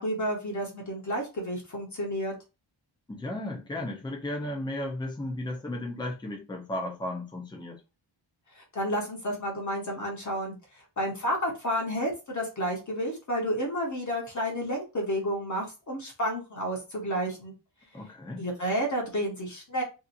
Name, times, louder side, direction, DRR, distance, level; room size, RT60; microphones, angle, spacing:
voice 1, 0.0-2.3 8.6-17.5 18.4-19.8, equal, 35° left, 0.8 m, -31 dB
voice 2, 3.1-7.8 17.9-18.5, left 1 dB, 10° left, 0.5 m, -34 dB
2.7 x 2.4 x 2.5 m
wide cardioid pair, 180°, 49 cm